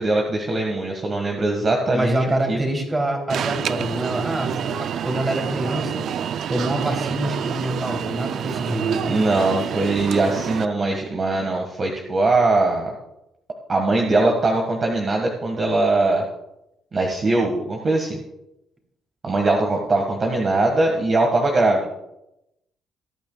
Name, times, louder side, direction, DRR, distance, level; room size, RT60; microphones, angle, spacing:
voice 1, 0.0-2.1 2.5-2.6 9.1-12.9 13.7-16.2 16.9-18.2 19.2-21.9, right 2 dB, 40° right, 1 dB, 1.6 m, -21 dB
voice 2, 1.9-6.1 6.5-9.1, right 1 dB, 25° right, 2 dB, 3.0 m, -25 dB
Alarm, 3.3-10.6, right 8 dB, 70° right, 0.4 m, -27 dB
20.0 x 9.0 x 2.3 m, 0.86 s
cardioid pair, 90°, 0 cm